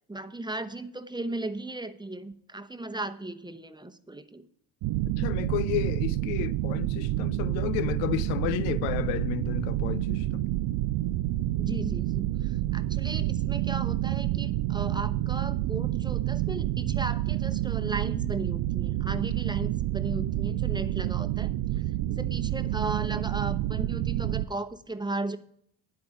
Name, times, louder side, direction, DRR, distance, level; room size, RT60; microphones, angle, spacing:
voice 1, 0.1-4.5 11.6-21.8 22.1-25.4, right 2 dB, 10° right, 0.8 m, -36 dB
sound 1, 4.8-24.5, right 15 dB, 65° right, 0.5 m, -28 dB
voice 2, 5.1-10.4, left 14 dB, 85° left, 0.6 m, -32 dB
9.5 x 8.1 x 4.8 m
supercardioid pair, 65°, 46 cm